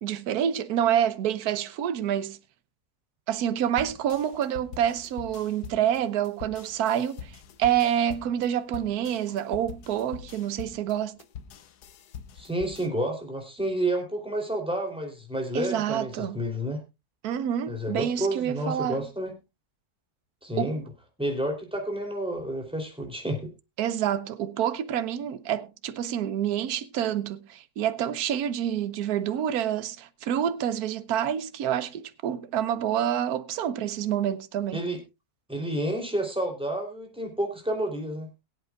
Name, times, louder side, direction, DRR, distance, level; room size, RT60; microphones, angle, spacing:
voice 1, 0.0-2.4 3.3-11.2 15.5-16.4 17.2-19.0 20.6-20.8 23.8-34.8, right 10 dB, 75° right, 1.3 m, -27 dB
sound 1, 3.8-12.9, left 8 dB, 90° left, 1.4 m, -44 dB
voice 2, 12.3-16.8 17.7-19.3 20.4-20.8 21.2-23.5 34.7-35.0 35.5-38.3, right 1 dB, 5° right, 3.1 m, -30 dB
22.0 x 8.3 x 2.4 m
omnidirectional pair, 1.6 m